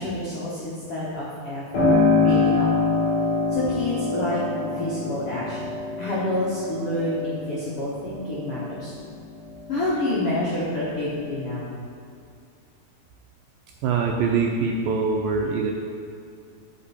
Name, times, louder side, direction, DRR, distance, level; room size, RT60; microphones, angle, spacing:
voice 1, 0.0-2.7 3.5-8.9 9.7-11.8, left 1 dB, 80° left, -8 dB, 1.3 m, -28 dB
Piano, 1.7-10.2 10.6-11.6, left 3 dB, 55° left, 3.7 m, -25 dB
voice 2, 13.8-15.7, right 5 dB, 85° right, 0 dB, 2.0 m, -23 dB
13.0 x 4.5 x 4.2 m, 2.4 s
omnidirectional pair, 4.6 m